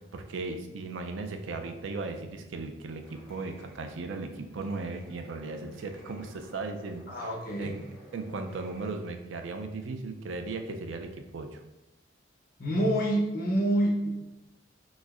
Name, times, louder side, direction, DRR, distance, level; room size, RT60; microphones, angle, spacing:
voice 1, 0.0-7.3 7.6-7.8 8.1-11.6, right 3 dB, 85° right, 6 dB, 0.4 m, -37 dB
sound 1, 3.0-8.9, left 1 dB, 5° left, 0.6 m, -54 dB
voice 2, 7.1-7.8 12.6-14.1, right 1 dB, 50° left, -3 dB, 0.9 m, -27 dB
6.0 x 2.1 x 2.4 m, 0.97 s
head